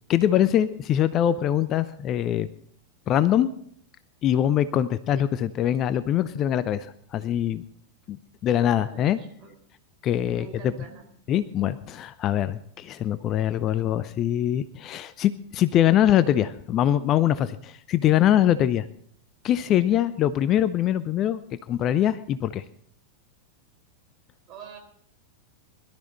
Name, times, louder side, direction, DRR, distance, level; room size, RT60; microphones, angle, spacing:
voice 1, 0.1-2.5 3.1-3.5 4.2-7.6 8.1-8.2 8.4-9.2 10.0-10.7 11.3-18.9 19.4-21.4 21.7-22.6, left 11 dB, 35° left, 15 dB, 0.6 m, -23 dB
voice 2, 8.8-9.5 10.3-11.0 24.5-24.8, right 7 dB, 35° right, 3 dB, 4.4 m, -45 dB
22.0 x 12.5 x 4.0 m, 0.63 s
figure-of-eight pair, 90°, 0 cm